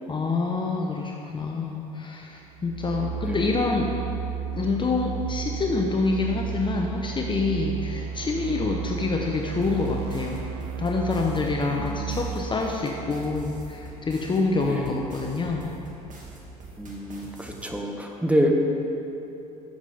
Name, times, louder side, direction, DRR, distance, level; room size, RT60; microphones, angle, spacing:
voice 1, 0.1-3.9 4.6-10.5 10.8-15.7, left 3 dB, 25° left, 1 dB, 0.9 m, -27 dB
sound 1, 2.5-14.2, right 7 dB, 70° right, 0.6 m, -34 dB
sound 2, 9.6-17.6, right 2 dB, 40° right, 2.3 m, -43 dB
voice 2, 11.7-12.2 14.7-14.9 16.8-18.5, equal, 5° right, 2 dB, 1.3 m, -27 dB
14.0 x 7.2 x 3.6 m, 3.0 s
hypercardioid pair, 70°, 20 cm